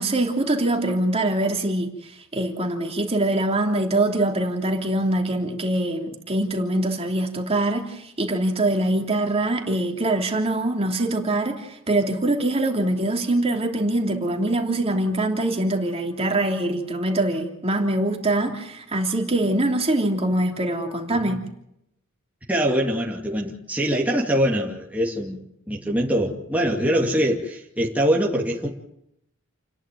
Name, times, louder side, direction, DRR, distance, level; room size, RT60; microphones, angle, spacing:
voice 1, 0.0-21.4, right 1 dB, 30° right, 2 dB, 3.2 m, -23 dB
voice 2, 22.5-25.4 25.7-28.7, equal, 5° right, -2 dB, 2.4 m, -23 dB
29.5 x 11.0 x 9.2 m, 0.78 s
head